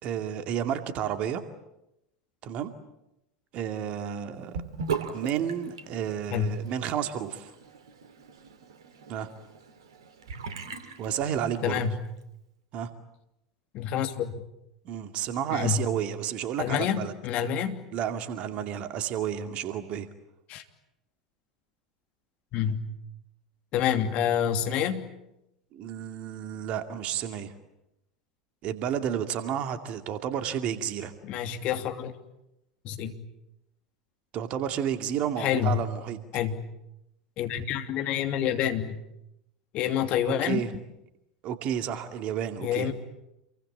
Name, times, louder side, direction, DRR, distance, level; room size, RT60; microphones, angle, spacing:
voice 1, 0.0-1.4 2.4-2.7 3.5-4.6 5.1-7.5 9.1-9.3 11.0-11.8 12.7-12.9 14.8-17.1 17.9-20.1 25.7-27.5 28.6-31.1 34.3-36.2 40.4-40.7 41.4-42.9, right 9 dB, 40° right, 8 dB, 2.4 m, -31 dB
Sink (filling or washing) / Bathtub (filling or washing), 4.5-11.8, right 6 dB, 65° right, 2.5 m, -39 dB
voice 2, 11.6-12.0 13.7-14.4 15.5-15.9 16.6-17.8 20.5-20.6 22.5-22.8 23.7-25.0 31.2-32.1 32.8-33.2 35.4-35.8 36.3-36.6 37.4-39.0 39.7-40.6 42.6-42.9, left 9 dB, 45° left, 6 dB, 2.8 m, -27 dB
28.0 x 23.5 x 8.9 m, 0.87 s
figure-of-eight pair, 75°, 3 cm